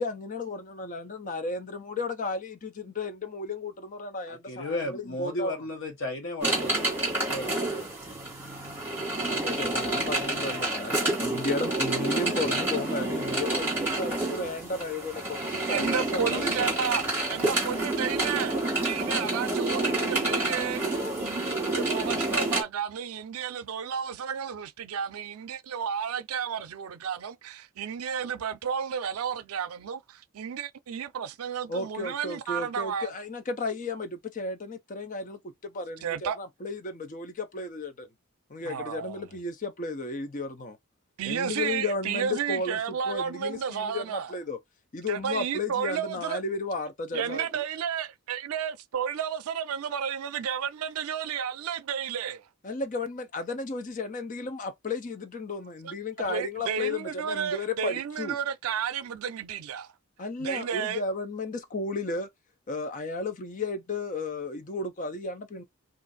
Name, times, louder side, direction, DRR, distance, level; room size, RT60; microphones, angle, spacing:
voice 1, 0.0-5.6 9.2-16.7 31.7-38.1 38.5-40.8 41.2-44.6 44.9-47.6 52.6-58.4 60.2-62.3 62.7-65.6, left 3 dB, 35° left, 0.5 m, -34 dB
voice 2, 4.3-8.2, left 1 dB, 60° left, 1.1 m, -35 dB
sound 1, 6.4-22.6, right 2 dB, 10° right, 1.3 m, -28 dB
voice 3, 15.7-17.0 17.3-18.5 18.8-20.8 21.2-30.0 30.4-33.1 36.0-36.4 38.7-39.1 41.2-44.2 45.1-46.4 47.1-52.4 56.3-59.9 60.4-61.0, right 7 dB, 85° right, 0.4 m, -32 dB
2.5 x 2.5 x 3.9 m
head